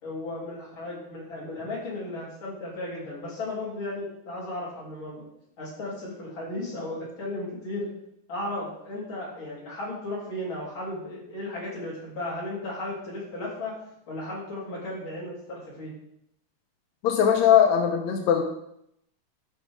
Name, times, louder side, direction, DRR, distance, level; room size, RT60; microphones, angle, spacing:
voice 1, 0.0-5.2 5.6-7.9 8.3-13.7 14.1-15.9, left 1 dB, 35° left, -6 dB, 3.5 m, -35 dB
voice 2, 17.0-18.4, left 8 dB, 80° left, 3 dB, 1.6 m, -20 dB
11.5 x 5.9 x 3.6 m, 0.76 s
omnidirectional pair, 4.2 m